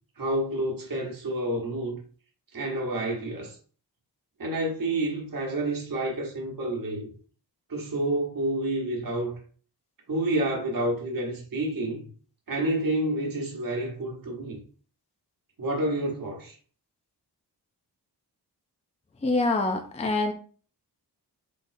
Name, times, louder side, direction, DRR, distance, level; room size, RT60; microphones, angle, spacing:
voice 1, 0.2-2.0 2.5-3.6 4.4-7.1 7.7-9.4 10.1-12.1 12.5-14.6 15.6-16.6, right 1 dB, 55° right, 1.2 m, -29 dB
voice 2, 19.2-20.3, left 2 dB, 15° left, 0.5 m, -25 dB
4.2 x 3.4 x 2.6 m
wide cardioid pair, 100°, 40 cm